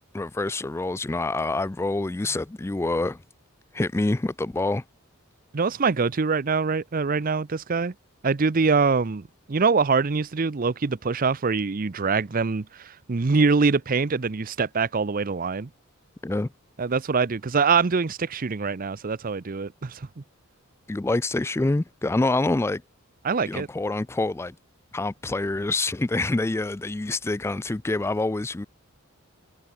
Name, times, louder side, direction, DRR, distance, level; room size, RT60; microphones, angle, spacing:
voice 1, 0.1-3.2 3.7-4.8 16.2-16.5 20.9-22.8 23.5-24.5 24.9-28.7, left 2 dB, 10° left, 0.3 m, -26 dB
voice 2, 5.5-7.9 8.2-15.7 16.8-20.1 23.2-23.7, right 4 dB, 40° right, 0.6 m, -24 dB
head